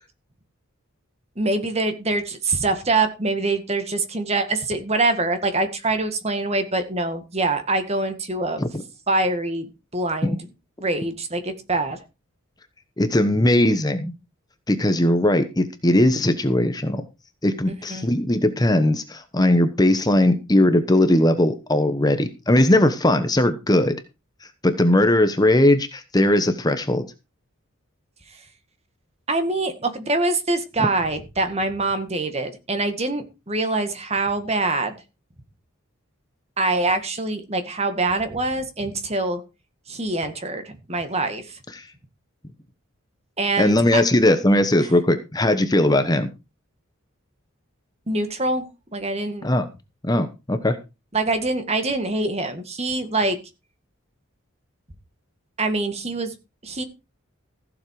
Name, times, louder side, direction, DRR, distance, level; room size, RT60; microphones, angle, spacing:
voice 1, 1.4-8.6 9.1-10.5 10.8-12.0 17.9-18.1 29.3-34.9 36.6-39.4 39.9-41.6 43.4-44.0 48.1-49.5 51.1-53.4 55.6-56.3 56.6-56.8, right 2 dB, 30° right, 8 dB, 1.9 m, -24 dB
voice 2, 13.0-14.1 14.7-17.0 17.4-24.0 24.6-27.0 30.8-30.9 41.7-41.9 43.6-46.3 49.4-49.7 50.0-50.8, left 1 dB, 20° left, 9 dB, 1.0 m, -19 dB
15.5 x 7.3 x 4.8 m, 0.28 s
head